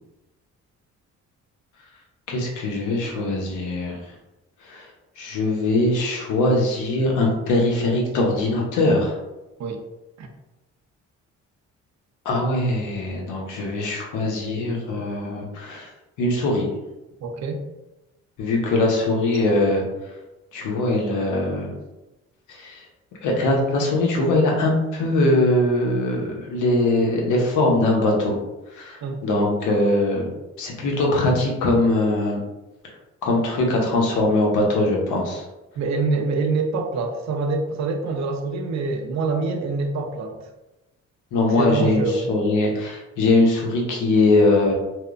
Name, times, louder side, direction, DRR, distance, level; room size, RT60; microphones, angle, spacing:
voice 1, 2.3-4.0 4.7-4.9 5.2-9.2 12.2-15.9 16.2-16.7 18.4-19.8 20.5-21.7 22.5-22.8 23.2-28.4 28.8-30.3 30.6-32.4 33.2-35.4 41.3-42.0 42.3-44.7, left 2 dB, 85° left, 0 dB, 0.7 m, -21 dB
voice 2, 17.2-17.6 29.0-29.5 35.8-40.4 41.4-42.3, right 3 dB, 65° right, 4 dB, 0.5 m, -25 dB
2.8 x 2.0 x 2.4 m, 1.0 s
cardioid pair, 90°, 30 cm